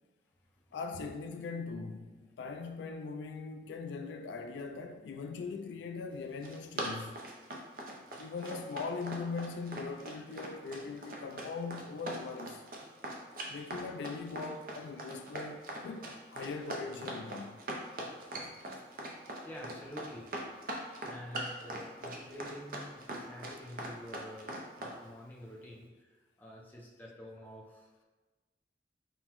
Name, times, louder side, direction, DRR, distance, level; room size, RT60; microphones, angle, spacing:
voice 1, 0.7-7.2 8.2-12.6 13.5-17.6, left 4 dB, 80° left, 0.3 m, -41 dB
Run, 6.2-25.0, right 1 dB, 50° right, 0.6 m, -41 dB
voice 2, 19.4-20.3 20.6-28.0, equal, 10° left, 0.6 m, -48 dB
5.6 x 2.1 x 2.9 m
head